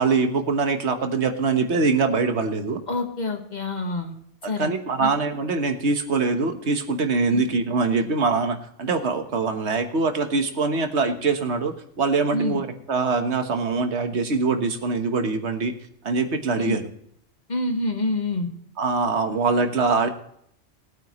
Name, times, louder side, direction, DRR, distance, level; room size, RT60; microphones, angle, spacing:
voice 1, 0.0-2.8 4.4-15.7 16.0-16.8 18.8-20.1, right 4 dB, 70° right, 6 dB, 1.5 m, -23 dB
voice 2, 2.9-4.1 4.5-4.7 5.0-5.1 7.3-7.4 12.3-12.6 16.6-16.8 17.5-18.5, left 2 dB, 40° left, 4 dB, 1.7 m, -26 dB
19.5 x 9.1 x 3.1 m, 0.70 s
omnidirectional pair, 1.2 m